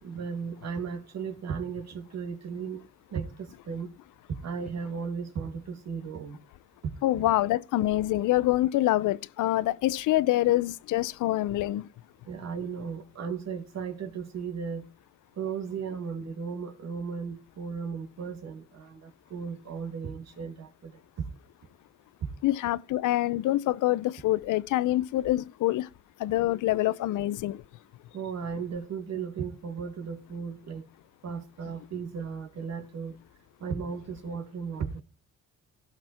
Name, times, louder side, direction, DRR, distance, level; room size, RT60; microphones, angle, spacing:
voice 1, 0.0-2.8 3.1-3.9 4.3-6.4 6.8-7.3 12.3-14.9 15.4-20.9 21.2-21.3 22.2-22.3 28.1-30.9 31.2-33.2 33.6-35.0, right 6 dB, 60° right, 2.5 m, -35 dB
voice 2, 7.0-11.9 22.4-25.9 26.2-27.6, left 15 dB, 85° left, 0.8 m, -26 dB
17.0 x 6.0 x 4.3 m
cardioid pair, 90°, 30 cm